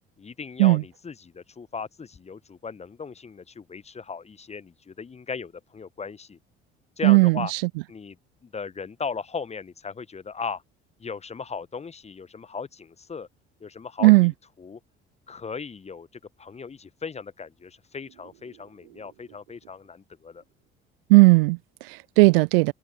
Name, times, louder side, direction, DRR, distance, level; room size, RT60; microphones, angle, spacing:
voice 1, 0.2-6.4 7.0-7.5 7.9-8.2 8.4-10.6 11.0-13.3 13.6-14.8 15.3-16.1 16.4-20.4, left 5 dB, 20° left, 0.9 m, -37 dB
voice 2, 7.0-7.6 14.0-14.3 21.1-22.7, right 26 dB, 60° right, 0.5 m, -17 dB
figure-of-eight pair, 55°, 33 cm